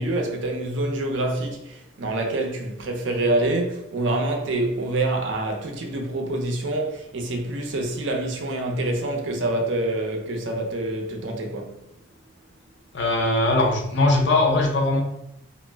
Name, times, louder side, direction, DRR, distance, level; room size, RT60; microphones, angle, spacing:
voice 1, 0.0-11.9, right 2 dB, 80° right, 0.6 m, -26 dB
voice 2, 12.9-15.0, left 2 dB, 70° left, 0.6 m, -20 dB
2.4 x 2.1 x 3.3 m
head